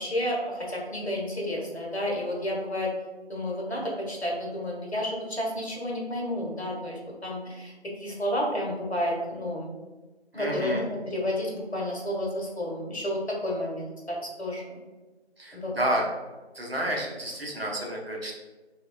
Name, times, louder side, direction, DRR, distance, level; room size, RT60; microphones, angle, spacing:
voice 1, 0.0-2.9 3.3-7.7 8.0-9.7 10.3-14.8 15.5-16.0, left 1 dB, 70° left, -2 dB, 0.9 m, -31 dB
voice 2, 10.3-10.8 15.4-16.0 16.5-18.3, right 1 dB, 60° right, -2 dB, 0.6 m, -30 dB
3.0 x 2.2 x 2.2 m, 1.2 s
figure-of-eight pair, 175°, 34 cm